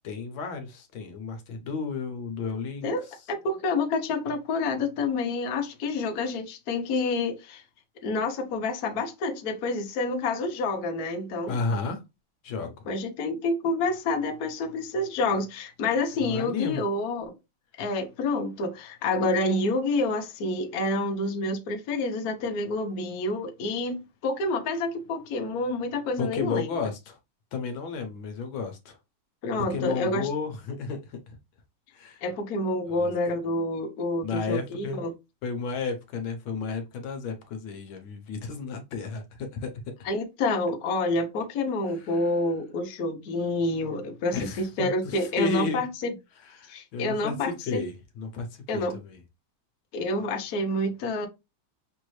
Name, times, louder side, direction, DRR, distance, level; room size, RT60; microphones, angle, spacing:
voice 1, 0.0-2.9 11.5-12.0 12.4-12.7 16.2-16.8 26.2-27.2 27.5-29.0 29.6-31.3 31.9-32.2 32.9-33.1 34.2-35.0 35.4-39.9 42.1-42.3 44.3-45.8 46.5-49.2, left 4 dB, 70° left, 1.6 m, -33 dB
voice 2, 2.8-7.6 8.0-11.6 12.9-17.3 17.8-26.8 29.4-30.3 32.2-35.1 40.0-46.1 46.7-47.8 48.7-49.0 49.9-51.3, left 2 dB, 55° left, 1.2 m, -28 dB
6.1 x 2.6 x 3.1 m
omnidirectional pair, 2.3 m